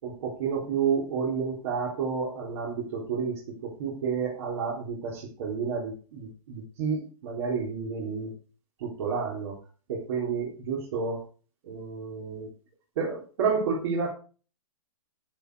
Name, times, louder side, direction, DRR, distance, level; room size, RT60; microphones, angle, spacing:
voice 1, 0.0-8.3 8.8-9.5 9.9-11.2 11.6-12.5 13.0-14.1, right 6 dB, 50° right, -3 dB, 3.6 m, -30 dB
10.0 x 9.2 x 4.7 m, 0.38 s
hypercardioid pair, 155°, 18 cm